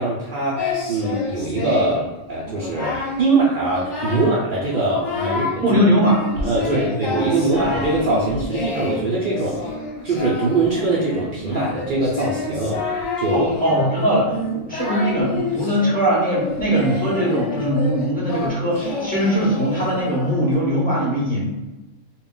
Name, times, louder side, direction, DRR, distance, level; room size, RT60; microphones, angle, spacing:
voice 1, 0.0-5.5 6.4-9.7 10.0-12.8 13.2-13.5, right 2 dB, 85° right, -5 dB, 0.4 m, -22 dB
Singing, 0.6-2.1 2.4-3.2 3.6-4.4 4.7-5.6 6.0-20.5, left 3 dB, 75° left, 1.1 m, -28 dB
voice 2, 5.6-6.2 6.7-6.9 13.3-21.5, equal, 10° left, -7 dB, 0.7 m, -20 dB
2.3 x 2.1 x 3.7 m, 1.0 s
omnidirectional pair, 1.5 m